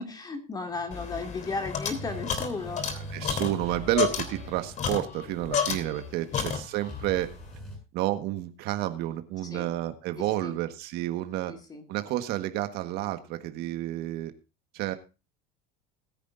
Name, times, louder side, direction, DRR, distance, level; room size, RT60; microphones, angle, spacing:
voice 1, 0.0-3.1 6.3-6.4 9.5-9.7 10.2-10.6 11.5-11.8, left 4 dB, 20° left, 5 dB, 2.3 m, -35 dB
sound 1, 0.6-7.8, equal, 5° left, 7.6 m, -44 dB
sound 2, 0.9-6.1 6.3-7.0, left 7 dB, 40° left, 3.1 m, -31 dB
voice 2, 3.1-7.3 7.9-11.5 11.9-14.3 14.7-15.0, right 14 dB, 60° right, 8 dB, 1.5 m, -30 dB
21.0 x 9.9 x 2.6 m, 0.30 s
supercardioid pair, 130°, 19 cm